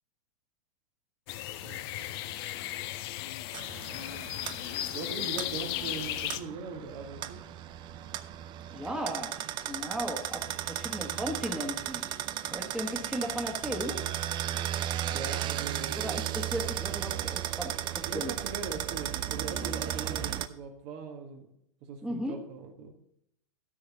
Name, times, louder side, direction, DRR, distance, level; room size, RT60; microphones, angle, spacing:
sound 1, 1.3-6.4, left 13 dB, 45° left, 0.7 m, -36 dB
voice 1, 1.6-2.2 4.9-7.4 15.1-15.9 17.8-21.5 21.8-22.9, right 4 dB, 40° right, 4 dB, 1.5 m, -40 dB
sound 2, 3.5-20.5, right 12 dB, 25° right, 0.5 m, -35 dB
voice 2, 8.7-9.3 9.6-12.1 12.5-14.0 15.9-18.3 22.0-22.3, equal, 5° right, 1 dB, 1.5 m, -36 dB
13.0 x 4.8 x 6.7 m, 0.74 s
hypercardioid pair, 110°, 18 cm